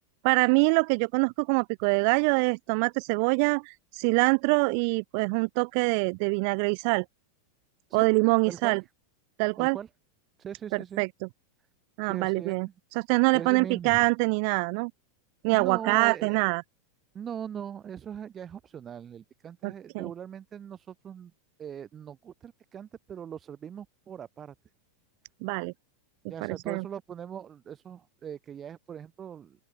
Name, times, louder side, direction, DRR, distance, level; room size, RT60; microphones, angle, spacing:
voice 1, 0.2-7.0 7.9-8.8 9.4-9.8 11.0-11.1 12.0-14.9 15.4-16.6 19.6-20.1 25.4-25.7 26.4-26.8, right 36 dB, 45° right, 0.5 m, -25 dB
voice 2, 8.5-8.8 9.6-9.9 10.4-11.0 12.0-12.7 13.3-14.1 15.5-16.4 17.1-21.3 21.6-24.5 26.3-29.7, right 8 dB, 25° right, 4.7 m, -40 dB
open air
figure-of-eight pair, 90°, 0 cm